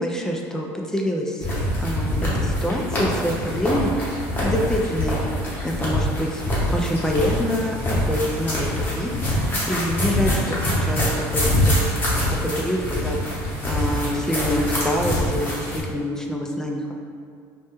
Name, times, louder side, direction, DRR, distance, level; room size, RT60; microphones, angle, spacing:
voice 1, 0.0-1.5 1.8-5.2 5.6-6.4 6.7-7.8 8.1-11.9 12.4-16.9, equal, 5° left, 0 dB, 0.3 m, -26 dB
sound 1, 1.4-15.8, equal, 25° left, 0.9 m, -24 dB
2.2 x 2.1 x 3.0 m, 2.2 s
supercardioid pair, 100°, 8 cm